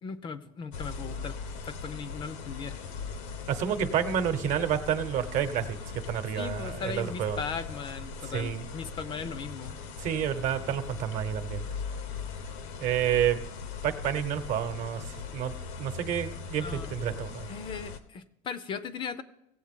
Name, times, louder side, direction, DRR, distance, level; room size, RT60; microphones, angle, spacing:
voice 1, 0.0-1.4 1.6-2.8 6.3-9.8 16.6-17.0 17.5-19.2, left 6 dB, 30° left, 14 dB, 0.5 m, -38 dB
sound 1, 0.7-18.0, left 5 dB, 85° left, 1.0 m, -39 dB
voice 2, 3.5-5.8 6.1-7.4 8.3-8.6 10.0-11.6 12.8-13.4 13.8-15.0 15.3-15.5 15.8-17.5, right 9 dB, 50° right, 10 dB, 1.0 m, -29 dB
17.5 x 7.5 x 3.7 m, 0.83 s
cardioid pair, 145°, 16 cm